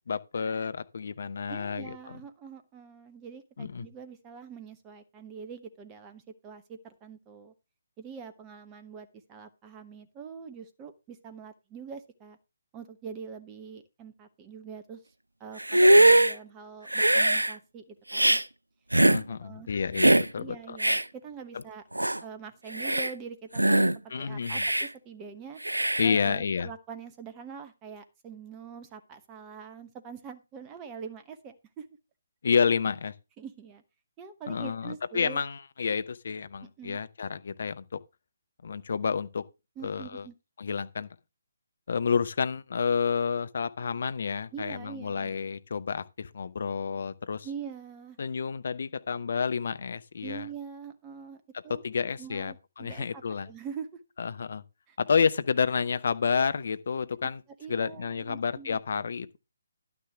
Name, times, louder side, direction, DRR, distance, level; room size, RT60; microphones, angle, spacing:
voice 1, 0.1-2.2 3.6-3.9 18.9-20.8 21.5-21.6 24.1-24.6 26.0-26.7 32.4-33.1 34.5-38.0 38.6-39.4 39.8-40.2 40.6-41.1 41.9-47.5 48.2-50.5 51.7-53.5 54.2-54.6 55.0-57.4 57.7-59.4, left 6 dB, 50° left, 0.8 m, -30 dB
voice 2, 1.5-7.5 8.0-12.4 12.7-15.0 15.4-18.4 19.4-19.7 20.4-21.8 22.2-25.6 26.0-31.9 33.4-33.8 34.2-35.4 36.6-37.0 39.8-40.3 44.5-45.4 47.4-48.2 50.2-51.8 52.2-54.0 54.9-55.0 57.6-58.8, right 6 dB, 15° right, 1.0 m, -44 dB
Hiss, 15.6-16.3 16.9-17.5 18.1-18.4 18.9-19.2 20.0-20.3 20.8-21.0 21.6-21.7 22.0-22.2 22.7-23.1 23.6-24.0 24.5-24.9 25.6-26.1, right 1 dB, 80° right, 0.5 m, -21 dB
11.5 x 9.6 x 3.4 m
figure-of-eight pair, 145°, 0 cm